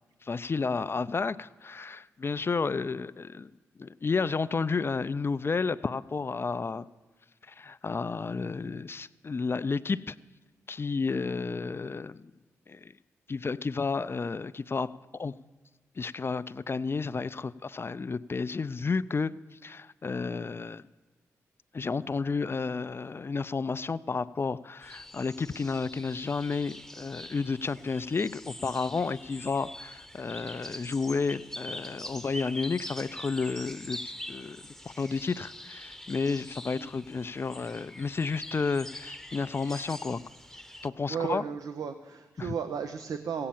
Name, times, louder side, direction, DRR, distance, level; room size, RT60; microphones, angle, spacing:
voice 1, 0.2-3.5 3.8-6.9 7.5-10.2 10.7-12.2 12.7-12.9 13.3-15.3 16.0-20.8 21.7-34.0 34.3-34.6 35.0-40.2 40.8-41.4 42.4-42.5, left 4 dB, 40° left, 16 dB, 0.4 m, -31 dB
sound 1, 24.8-40.9, left 1 dB, 5° left, 0.9 m, -44 dB
voice 2, 41.1-43.5, right 7 dB, 70° right, 7 dB, 0.7 m, -34 dB
15.5 x 8.7 x 7.2 m, 1.2 s
supercardioid pair, 40°, 6 cm